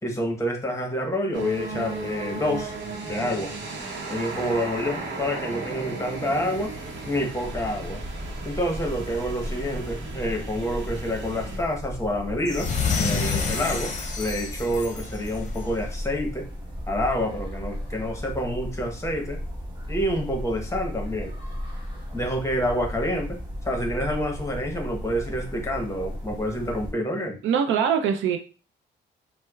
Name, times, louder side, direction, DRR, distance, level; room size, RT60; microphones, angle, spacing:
voice 1, 0.0-2.7 3.0-3.5 4.1-6.7 7.1-8.0 8.4-12.7 13.0-16.5 16.9-19.4 19.9-21.3 22.1-23.4 23.6-27.4, equal, 15° left, 2 dB, 0.9 m, -28 dB
sound 1, 1.3-11.6, right 3 dB, 65° right, 0.9 m, -35 dB
sound 2, 7.4-26.9, equal, 20° right, 1.1 m, -35 dB
sound 3, 12.4-15.8, left 5 dB, 40° left, 0.7 m, -28 dB
voice 2, 27.4-28.4, right 7 dB, 80° right, 6 dB, 0.5 m, -22 dB
4.3 x 2.1 x 2.3 m, 0.34 s
cardioid pair, 90°, 20 cm